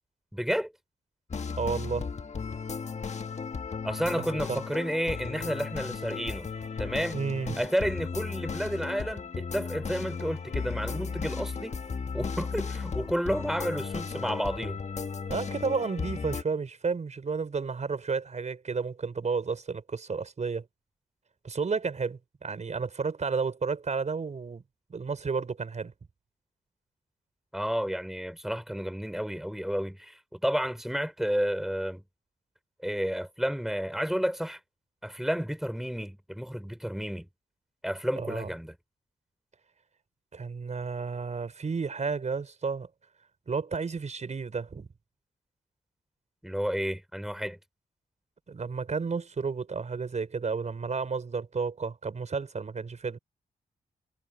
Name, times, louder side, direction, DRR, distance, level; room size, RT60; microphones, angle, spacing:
voice 1, 0.3-0.7 3.8-6.5 6.8-7.2 7.6-11.8 12.1-14.8 27.5-32.0 32.8-34.6 35.0-37.3 37.8-38.8 46.4-47.6, equal, ahead, 5.2 m, -31 dB
sound 1, 1.3-16.4, left 5 dB, 50° left, 1.5 m, -35 dB
voice 2, 1.6-2.1 4.5-4.6 7.1-7.6 15.3-20.7 21.4-24.6 24.9-25.9 38.2-38.5 40.3-42.9 43.5-44.9 48.5-53.2, right 5 dB, 50° right, 5.2 m, -32 dB
cardioid pair, 70°, 15 cm